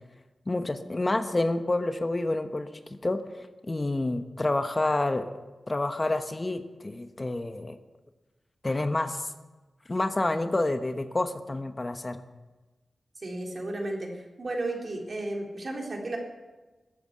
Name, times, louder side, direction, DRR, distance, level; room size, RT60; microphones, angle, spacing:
voice 1, 0.5-5.4 5.7-7.8 8.6-9.3 9.9-12.2, left 2 dB, 30° left, 8 dB, 1.1 m, -29 dB
voice 2, 13.2-16.2, right 2 dB, 55° right, 0 dB, 3.9 m, -33 dB
14.0 x 9.5 x 9.8 m, 1.2 s
cardioid pair, 60°, 0 cm